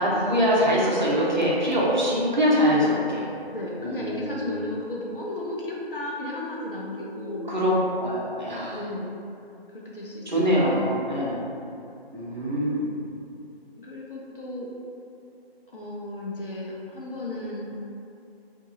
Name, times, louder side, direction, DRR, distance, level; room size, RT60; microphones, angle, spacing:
voice 1, 0.0-3.2 3.8-4.6 7.5-8.8 10.3-11.4 12.1-12.9, equal, 45° right, -6 dB, 0.8 m, -23 dB
voice 2, 2.7-3.1 3.5-7.5 8.7-9.1 9.7-11.0 12.4-12.5 13.7-14.7 15.7-17.7, left 1 dB, 60° left, -4 dB, 0.7 m, -34 dB
2.7 x 2.6 x 3.8 m, 2.6 s
figure-of-eight pair, 180°, 31 cm